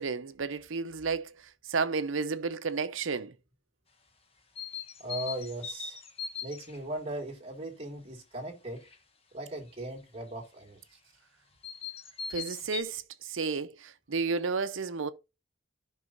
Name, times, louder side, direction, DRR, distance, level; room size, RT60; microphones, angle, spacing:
voice 1, 0.0-1.3 1.7-3.3 12.3-15.1, right 4 dB, 80° right, 0.7 m, -32 dB
sound 1, 4.6-6.8 8.8-8.9 11.6-12.8, left 6 dB, 30° left, 1.0 m, -39 dB
voice 2, 5.0-6.0 6.4-8.8 9.3-10.8, right 1 dB, 30° right, 2.1 m, -38 dB
14.0 x 5.5 x 2.6 m
head